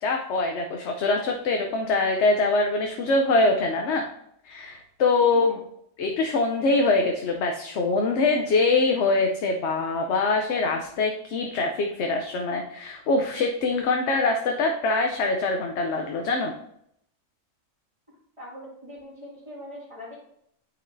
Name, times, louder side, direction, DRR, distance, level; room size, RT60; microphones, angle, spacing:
voice 1, 0.0-4.1 4.4-5.6 6.0-16.5, left 3 dB, 65° left, 3 dB, 0.9 m, -24 dB
voice 2, 18.4-20.2, left 1 dB, 25° right, -12 dB, 2.2 m, -42 dB
9.0 x 4.8 x 2.6 m, 0.72 s
omnidirectional pair, 1.4 m